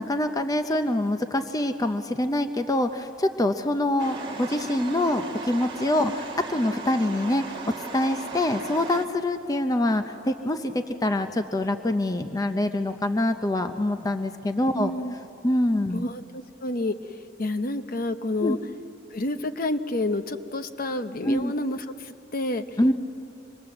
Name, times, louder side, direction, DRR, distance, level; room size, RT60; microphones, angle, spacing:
voice 1, 0.0-14.9 15.4-16.1 18.4-18.6 21.2-21.5 22.8-22.9, left 1 dB, 20° left, 7 dB, 0.7 m, -25 dB
sound 1, 4.0-9.1, right 3 dB, 25° right, 1.6 m, -37 dB
voice 2, 14.7-15.1 15.9-16.9 17.4-18.6 19.1-22.8, left 2 dB, 50° left, 9 dB, 1.0 m, -29 dB
26.0 x 21.0 x 7.8 m, 2.9 s
head